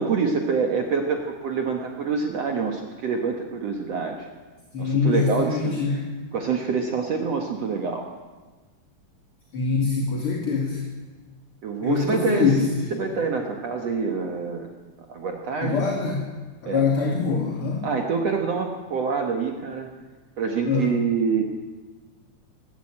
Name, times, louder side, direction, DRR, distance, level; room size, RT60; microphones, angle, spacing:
voice 1, 0.0-4.3 4.8-5.8 6.3-8.1 11.6-12.5 12.9-14.7 15.1-15.8 16.7-16.8 17.8-19.9 20.4-21.4, right 5 dB, 55° right, 2 dB, 2.1 m, -26 dB
voice 2, 4.7-6.1 9.5-10.8 11.8-13.0 15.6-16.2 16.6-17.8 20.7-21.0, left 5 dB, 40° left, -1 dB, 2.9 m, -24 dB
24.0 x 12.5 x 8.8 m, 1.3 s
omnidirectional pair, 4.1 m